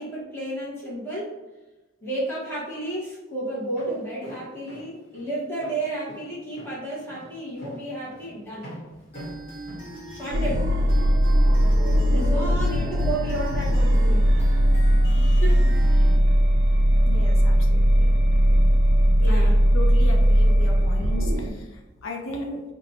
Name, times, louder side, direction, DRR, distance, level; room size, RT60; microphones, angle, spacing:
voice 1, 0.0-1.3 2.0-8.7 10.1-10.7 12.1-14.4 15.3-16.1 19.2-19.6, right 1 dB, 10° left, -7 dB, 1.2 m, -32 dB
Walk footsteps, 3.6-10.7, equal, 50° left, 1.2 m, -44 dB
sound 1, 9.1-16.2, right 1 dB, 30° left, 1.3 m, -40 dB
sound 2, 10.3-21.5, equal, 60° right, 0.4 m, -19 dB
voice 2, 11.5-12.0 17.0-18.1 19.3-22.6, left 1 dB, 90° left, 2 dB, 0.6 m, -36 dB
3.0 x 2.3 x 4.1 m, 1.1 s
head